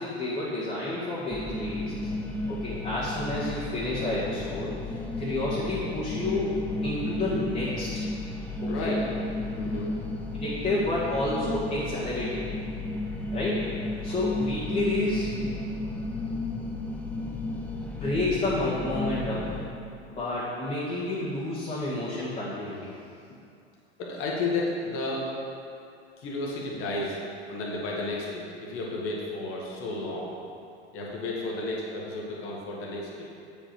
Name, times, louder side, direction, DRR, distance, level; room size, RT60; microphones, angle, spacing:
voice 1, 0.0-2.1 2.5-6.5 6.8-8.0 8.6-8.9 10.4-12.4 13.3-13.6 14.0-15.6 18.0-19.5 20.1-22.9, left 2 dB, 20° left, -9 dB, 1.7 m, -30 dB
sound 1, 1.3-19.7, left 2 dB, 5° left, 0.7 m, -33 dB
voice 2, 8.6-9.0 9.6-9.9 17.3-17.9 24.0-25.3 26.2-27.2 27.5-30.3 30.9-33.3, left 2 dB, 40° left, -3 dB, 1.7 m, -32 dB
8.4 x 5.4 x 4.5 m, 2.6 s
figure-of-eight pair, 85°, 33 cm